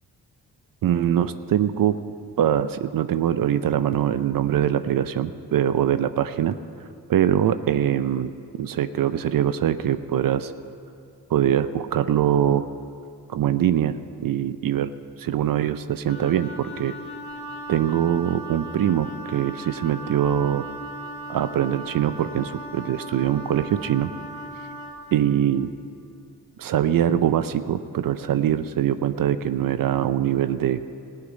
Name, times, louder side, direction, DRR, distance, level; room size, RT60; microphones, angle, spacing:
voice 1, 0.8-2.0 2.4-6.6 7.1-8.3 8.6-10.5 11.3-12.6 13.3-14.0 14.2-14.9 15.2-16.9 17.7-20.7 21.3-24.1 25.1-25.7 26.6-30.8, right 10 dB, 60° right, 12 dB, 0.6 m, -23 dB
Wind instrument woodwind instrument, 16.1-25.2, right 1 dB, 70° left, 1.4 m, -38 dB
15.5 x 5.8 x 9.1 m, 2.5 s
cardioid pair, 60°, 38 cm